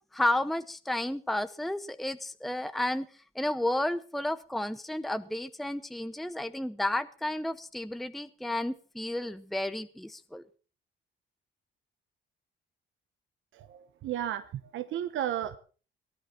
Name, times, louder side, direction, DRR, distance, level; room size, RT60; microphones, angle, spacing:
voice 1, 0.1-3.1 3.3-10.4, left 1 dB, ahead, 11 dB, 0.8 m, -32 dB
voice 2, 13.6-14.4 14.7-15.6, right 11 dB, 75° right, 11 dB, 1.1 m, -33 dB
18.5 x 10.0 x 5.9 m, 0.40 s
cardioid pair, 90°, 20 cm